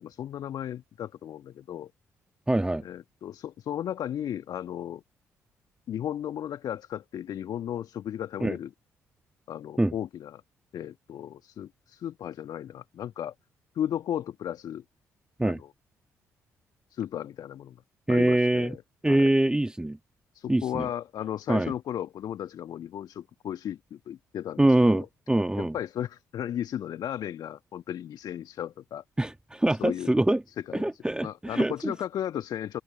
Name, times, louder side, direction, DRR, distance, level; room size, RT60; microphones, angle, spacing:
voice 1, 0.0-1.9 2.8-5.0 5.9-8.7 9.5-10.4 10.7-13.3 13.8-14.8 15.4-15.7 16.9-17.8 18.1-18.8 19.1-19.3 20.3-25.1 25.6-29.0 29.7-30.2 30.7-32.8, left 10 dB, 55° left, 1.7 m, -35 dB
voice 2, 2.5-2.8 8.4-8.6 9.8-9.9 15.4-15.6 18.1-18.8 19.0-20.0 20.5-20.8 21.5-21.7 24.6-25.7 29.2-30.4 30.7-31.9, right 1 dB, 10° right, 1.5 m, -24 dB
figure-of-eight pair, 40°, 8 cm